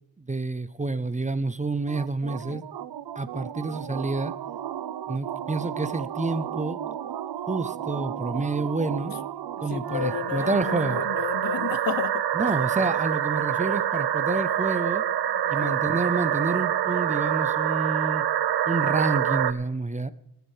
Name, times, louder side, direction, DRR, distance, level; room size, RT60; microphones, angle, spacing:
voice 1, 0.2-2.6 3.2-4.3 5.1-6.8 7.5-9.2 9.6-11.0 12.3-15.1 15.5-18.2 18.7-20.1, right 3 dB, 20° right, 0.5 m, -28 dB
sound 1, 1.9-19.5, right 10 dB, 85° right, 0.6 m, -28 dB
voice 2, 9.7-12.3 15.6-15.8, left 9 dB, 65° left, 0.5 m, -32 dB
14.5 x 13.0 x 3.2 m
wide cardioid pair, 120°, 38 cm